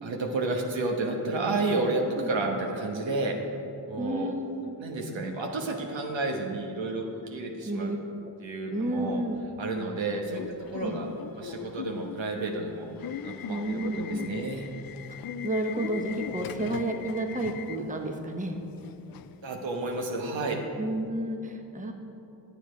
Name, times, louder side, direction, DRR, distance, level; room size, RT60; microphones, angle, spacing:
voice 1, 0.0-3.4 3.9-4.3 4.8-7.9 8.4-9.2 9.6-11.1 11.3-12.9 13.2-14.7 19.4-20.6, right 2 dB, 70° right, 2 dB, 1.2 m, -31 dB
voice 2, 4.0-4.8 7.6-8.0 8.2-8.3 8.7-9.4 10.8-11.0 13.5-14.3 15.4-18.6 20.8-21.9, right 1 dB, 15° right, 3 dB, 1.1 m, -31 dB
Subway metro underground / Alarm, 10.3-20.1, left 9 dB, 50° left, 0.5 m, -40 dB
9.0 x 7.1 x 5.0 m, 2.8 s
supercardioid pair, 50°, 47 cm